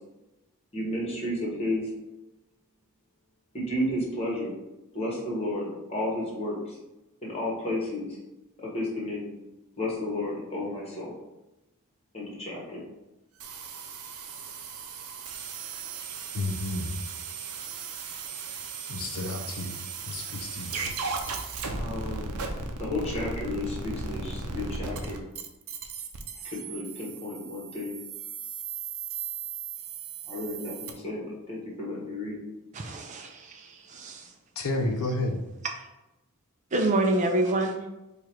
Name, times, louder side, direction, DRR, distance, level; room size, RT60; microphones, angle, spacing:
voice 1, 0.7-1.9 3.5-4.5 4.9-6.8 7.2-8.2 8.6-9.4 9.8-11.1 12.1-12.8 19.0-19.1 21.8-22.3 22.8-25.2 26.4-28.0 30.3-32.4, left 1 dB, 25° left, -3 dB, 1.3 m, -32 dB
sound 1, 13.4-30.9, right 5 dB, 80° right, 0.6 m, -37 dB
voice 2, 16.3-17.0 18.9-19.8 20.1-20.9 21.8-21.9 34.6-35.4, left 2 dB, 70° left, 4 dB, 0.5 m, -31 dB
voice 3, 32.7-34.3 35.8-35.9 36.7-37.9, right 2 dB, 35° right, 2 dB, 0.4 m, -27 dB
4.8 x 2.4 x 4.4 m, 0.98 s
head